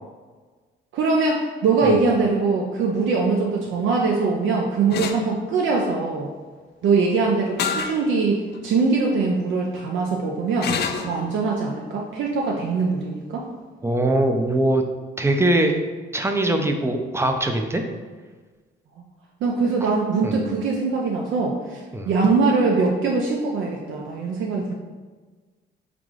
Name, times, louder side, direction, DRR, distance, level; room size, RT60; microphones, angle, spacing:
voice 1, 0.9-6.3 6.8-13.4 19.4-24.7, right 4 dB, 75° right, -1 dB, 0.5 m, -22 dB
sound 1, 4.9-5.2 7.6-8.0 8.5-8.6 10.6-11.1, left 6 dB, 55° left, 0.4 m, -26 dB
voice 2, 13.8-14.8 15.2-15.8 16.1-17.8 19.8-19.9 20.2-20.4 21.9-22.1, right 1 dB, 15° right, 5 dB, 0.4 m, -21 dB
3.8 x 3.6 x 3.1 m, 1.4 s
cardioid pair, 90°, 20 cm